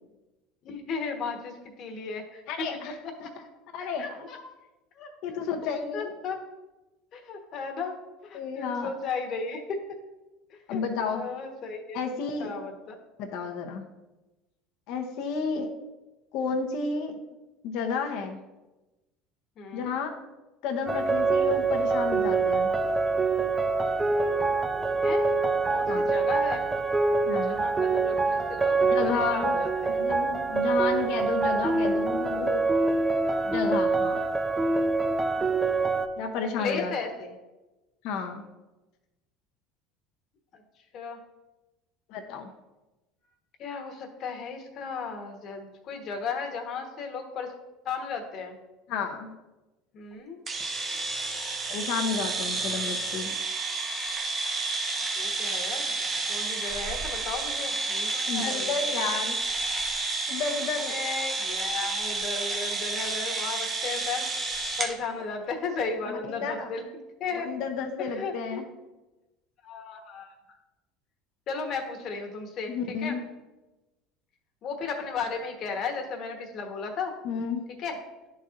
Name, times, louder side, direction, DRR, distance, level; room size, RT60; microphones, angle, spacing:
voice 1, 0.6-2.7 3.0-3.3 3.8-4.4 5.0-6.4 7.1-10.0 10.5-10.8 11.1-12.0 12.4-13.0 19.6-20.0 25.0-25.3 25.7-26.7 27.3-28.8 29.0-30.0 36.4-37.3 40.9-41.2 43.6-47.5 47.8-48.5 49.9-50.4 55.2-55.9 56.3-58.7 60.9-64.3 64.8-66.8 67.2-67.5 68.0-68.6 69.6-70.3 71.5-72.7 73.0-73.2 74.6-77.2 77.8-78.0, left 5 dB, 50° left, 4 dB, 1.2 m, -35 dB
voice 2, 2.5-3.3 3.7-4.3 5.2-6.1 8.3-8.9 10.7-11.2 11.9-12.5 13.2-13.9 14.9-15.7 16.3-17.1 17.6-18.4 19.7-20.1 20.6-22.7 25.9-26.0 27.3-27.6 28.8-29.6 29.9-32.6 33.4-34.2 36.2-36.9 38.0-38.4 42.1-42.5 48.9-49.3 51.7-53.4 58.3-59.4 60.3-60.9 66.1-66.7 67.3-68.6 72.7-73.2 77.2-77.6, left 5 dB, 65° left, 4 dB, 0.8 m, -31 dB
sound 1, 20.9-36.1, right 3 dB, 15° right, 0.5 m, -25 dB
sound 2, 50.5-64.9, right 3 dB, 35° right, 0.9 m, -30 dB
10.5 x 4.2 x 2.5 m, 1.1 s
supercardioid pair, 105°, 0 cm